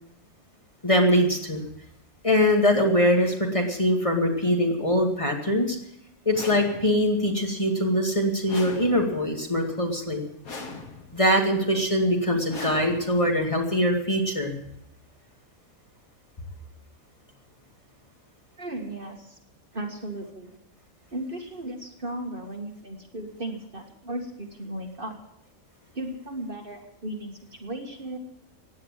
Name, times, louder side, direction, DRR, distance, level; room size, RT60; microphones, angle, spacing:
voice 1, 0.8-1.6 2.2-5.8 6.3-10.2 11.1-14.5, equal, 25° left, 1 dB, 2.3 m, -23 dB
sound 1, 6.3-7.2 8.5-9.4 10.4-11.3 12.5-13.4, left 3 dB, 85° left, 2.3 m, -40 dB
voice 2, 18.6-19.4 19.7-20.5 21.1-25.2 25.9-28.2, right 1 dB, 40° right, 2 dB, 2.1 m, -36 dB
16.5 x 10.0 x 7.4 m, 0.73 s
omnidirectional pair, 1.5 m